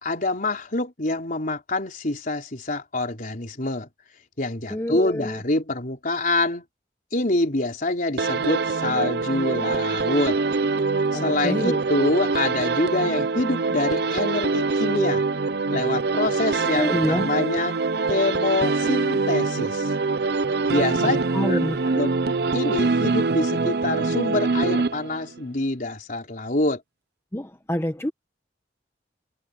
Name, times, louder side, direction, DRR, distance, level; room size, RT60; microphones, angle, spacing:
voice 1, 0.0-3.9 4.4-6.6 7.1-10.4 11.1-15.2 15.7-17.8 18.1-19.9 20.7-21.2 21.5-21.6 21.9-22.1 22.5-26.8, left 2 dB, 50° left, 3.9 m, -26 dB
voice 2, 4.7-5.4 11.1-11.8 16.8-17.3 21.0-21.9 27.3-28.1, equal, 15° left, 1.1 m, -26 dB
sound 1, 8.2-25.4, right 4 dB, 65° right, 0.7 m, -24 dB
head